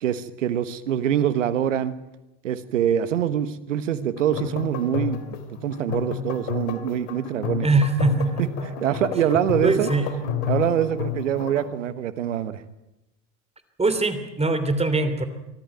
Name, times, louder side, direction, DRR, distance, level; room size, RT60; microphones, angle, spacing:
voice 1, 0.0-2.0 2.4-5.2 5.6-7.7 8.8-9.9 10.5-12.6, right 10 dB, 90° right, 14 dB, 1.3 m, -24 dB
sound 1, 4.2-11.7, left 8 dB, 70° left, 2.7 m, -31 dB
voice 2, 7.6-8.5 9.6-10.1 13.8-15.3, right 3 dB, 15° right, 10 dB, 3.0 m, -22 dB
24.0 x 14.0 x 9.3 m, 0.93 s
hypercardioid pair, 75°, 37 cm